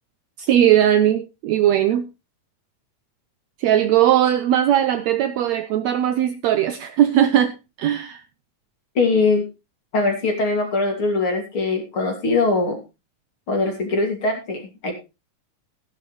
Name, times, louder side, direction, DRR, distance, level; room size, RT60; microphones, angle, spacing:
voice 1, 0.4-2.1 3.6-8.2, right 11 dB, 75° right, 1.7 m, -19 dB
voice 2, 9.0-9.4 9.9-12.8 13.5-14.9, left 3 dB, 40° left, 3.4 m, -21 dB
15.0 x 10.5 x 3.2 m
omnidirectional pair, 3.7 m